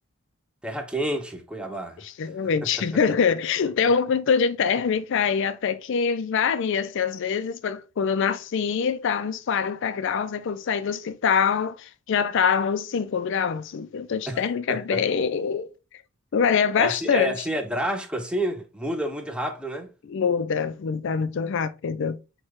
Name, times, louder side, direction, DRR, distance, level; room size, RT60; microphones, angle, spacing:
voice 1, 0.6-2.0 2.6-2.9 14.3-14.4 14.7-15.0 16.8-19.9, right 1 dB, 5° right, 0.5 m, -29 dB
voice 2, 2.0-15.7 16.3-17.3 20.0-22.2, left 6 dB, 55° left, 0.4 m, -24 dB
6.3 x 2.3 x 3.0 m
head